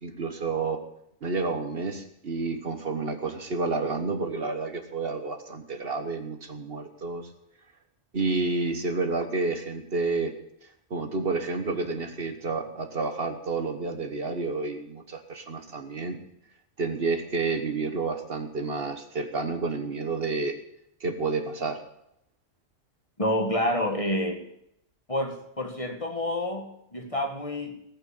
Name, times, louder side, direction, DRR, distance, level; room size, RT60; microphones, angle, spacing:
voice 1, 0.0-0.8 1.2-7.3 8.1-10.3 10.9-16.2 16.8-20.6 21.0-21.8, right 3 dB, 55° right, 7 dB, 1.4 m, -30 dB
voice 2, 23.2-24.4 25.1-27.8, left 1 dB, 30° left, 4 dB, 1.6 m, -28 dB
18.5 x 6.4 x 8.7 m, 0.77 s
omnidirectional pair, 1.2 m